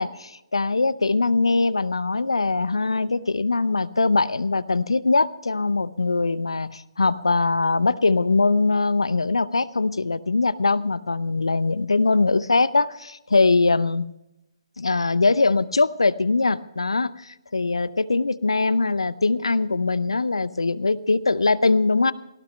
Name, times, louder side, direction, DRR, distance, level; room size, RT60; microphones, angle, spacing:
voice 1, 0.0-14.1 14.8-22.1, left 3 dB, 75° left, 17 dB, 0.8 m, -22 dB
18.0 x 17.0 x 3.3 m, 0.89 s
figure-of-eight pair, 140°, 3 cm